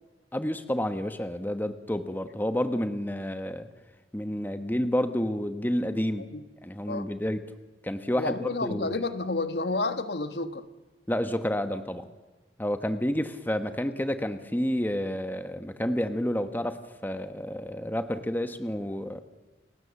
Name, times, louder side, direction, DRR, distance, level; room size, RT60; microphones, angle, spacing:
voice 1, 0.3-3.7 4.1-6.2 6.6-7.4 7.8-9.0 11.1-12.1 12.6-19.2, equal, 10° left, 9 dB, 1.2 m, -30 dB
voice 2, 8.1-10.7, left 2 dB, 70° left, 10 dB, 1.4 m, -30 dB
29.5 x 17.0 x 7.1 m, 1.2 s
head